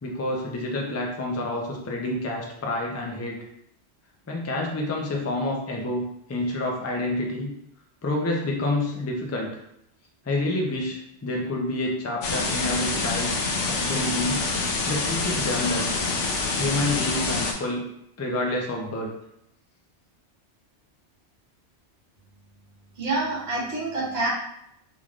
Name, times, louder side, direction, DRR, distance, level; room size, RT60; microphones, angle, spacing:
voice 1, 0.0-3.4 4.3-7.5 8.0-9.5 10.2-14.5 14.9-15.9 16.6-17.9 18.2-19.1, left 1 dB, 25° left, 0 dB, 0.3 m, -28 dB
sound 1, 12.2-17.5, left 3 dB, 85° left, 1.0 m, -26 dB
voice 2, 23.0-24.3, right 2 dB, 65° right, -7 dB, 1.5 m, -27 dB
3.6 x 3.1 x 2.4 m, 0.76 s
omnidirectional pair, 1.2 m